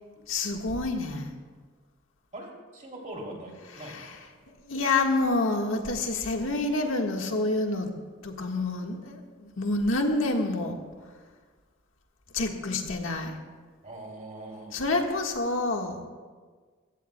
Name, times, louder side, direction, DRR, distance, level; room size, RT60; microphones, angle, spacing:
voice 1, 0.3-1.3 3.7-4.3 4.6-7.9 8.2-10.8 12.3-13.4 14.7-16.1, left 2 dB, 80° left, 2 dB, 1.6 m, -28 dB
voice 2, 2.3-4.1 13.8-14.8, right 1 dB, 35° right, -1 dB, 2.9 m, -41 dB
22.5 x 15.5 x 2.3 m, 1.5 s
head